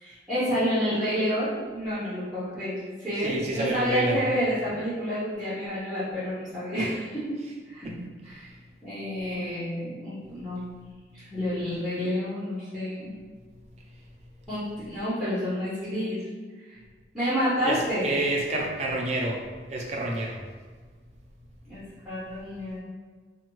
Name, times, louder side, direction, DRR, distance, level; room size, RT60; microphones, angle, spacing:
voice 1, 0.0-7.4 7.7-7.9 8.2-8.5 8.8-10.6 11.3-13.2 14.5-16.2 16.7-16.8 17.1-18.1 21.7-22.8, equal, ahead, -12 dB, 0.8 m, -29 dB
voice 2, 3.2-4.3 7.8-8.0 8.3-8.4 17.6-20.4, right 1 dB, 40° right, -1 dB, 0.5 m, -29 dB
3.4 x 2.2 x 3.0 m, 1.5 s
head